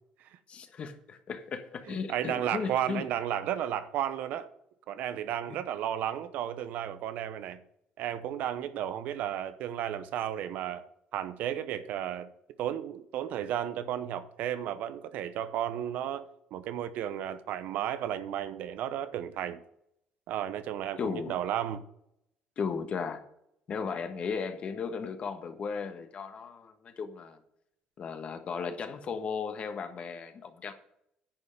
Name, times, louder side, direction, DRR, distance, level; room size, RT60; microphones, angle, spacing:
voice 1, 0.5-3.1 5.5-5.6 21.0-21.4 22.6-23.2 23.7-27.4 28.0-30.7, left 5 dB, 45° left, 1.4 m, -36 dB
voice 2, 1.9-4.5 4.9-7.6 8.0-10.9 11.1-12.3 12.6-19.6 20.3-21.8, right 10 dB, 70° right, 0.9 m, -33 dB
10.5 x 5.5 x 6.7 m
cardioid pair, 95°, 3 cm